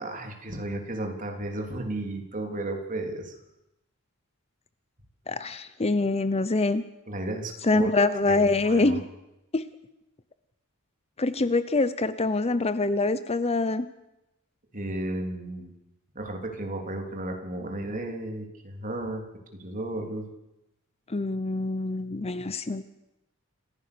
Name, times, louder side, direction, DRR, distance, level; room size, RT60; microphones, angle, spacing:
voice 1, 0.0-3.3 7.1-7.9 8.3-9.0 14.7-15.7 16.1-19.2 19.5-20.3, right 1 dB, 35° right, 3 dB, 3.3 m, -33 dB
voice 2, 5.3-6.8 7.6-9.0 9.5-9.7 11.2-13.9 21.1-22.8, left 3 dB, 30° left, 13 dB, 0.7 m, -25 dB
27.0 x 15.5 x 6.9 m, 0.91 s
head